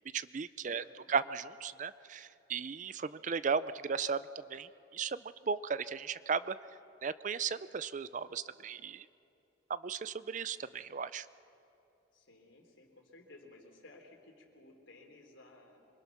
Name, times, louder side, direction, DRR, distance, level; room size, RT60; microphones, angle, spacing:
voice 1, 0.1-0.8 1.1-4.2 4.5-6.6 7.0-9.1 9.7-11.3, right 6 dB, 40° right, 15 dB, 0.4 m, -36 dB
voice 2, 0.7-1.1 12.1-15.9, left 2 dB, 80° left, 2 dB, 3.5 m, -57 dB
26.0 x 23.5 x 6.0 m, 2.8 s
head